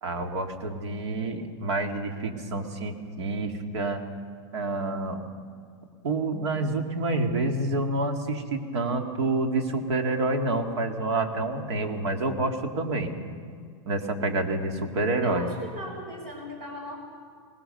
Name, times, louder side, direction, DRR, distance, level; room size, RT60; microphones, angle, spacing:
voice 1, 0.0-4.0 4.5-5.2 6.0-13.1 13.9-15.5, right 2 dB, 70° right, 5 dB, 2.2 m, -28 dB
voice 2, 15.2-17.0, right 1 dB, 35° right, 2 dB, 6.1 m, -38 dB
21.0 x 19.5 x 6.8 m, 2.2 s
supercardioid pair, 165°, 15 cm